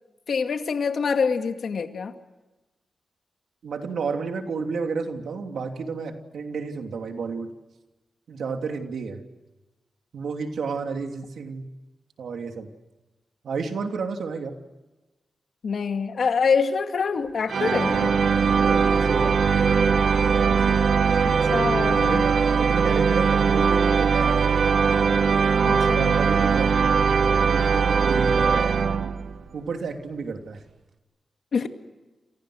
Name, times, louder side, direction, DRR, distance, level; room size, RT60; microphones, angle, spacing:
voice 1, 0.3-2.1 15.6-18.1 21.2-22.3 25.6-26.2 31.5-31.7, left 5 dB, 65° left, 6 dB, 2.3 m, -25 dB
voice 2, 3.6-7.5 8.3-9.2 10.1-11.7 12.2-12.7 13.4-14.5 18.6-19.7 20.4-20.8 22.1-24.5 25.9-26.8 27.4-28.8 29.5-30.6, right 5 dB, 85° right, 4 dB, 3.0 m, -31 dB
sound 1, 17.5-29.4, right 5 dB, 70° right, 1.7 m, -20 dB
28.5 x 28.5 x 6.5 m, 1.1 s
wide cardioid pair, 125°, 0 cm